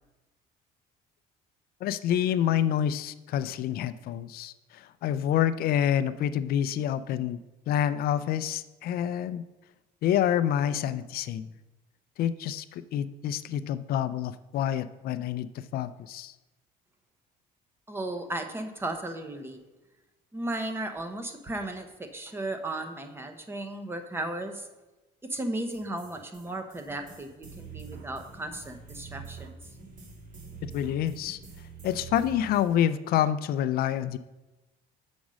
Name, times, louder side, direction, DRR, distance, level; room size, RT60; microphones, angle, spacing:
voice 1, 1.8-9.4 10.0-11.5 12.2-16.3 30.6-31.4 31.8-34.2, left 10 dB, 60° left, 13 dB, 0.5 m, -28 dB
voice 2, 17.9-19.6 20.3-24.7 25.2-29.6, right 1 dB, 15° right, 6 dB, 0.9 m, -35 dB
sound 1, 25.7-32.7, right 5 dB, 45° right, 2.1 m, -46 dB
7.2 x 5.2 x 6.2 m, 1.1 s
cardioid pair, 130°, 18 cm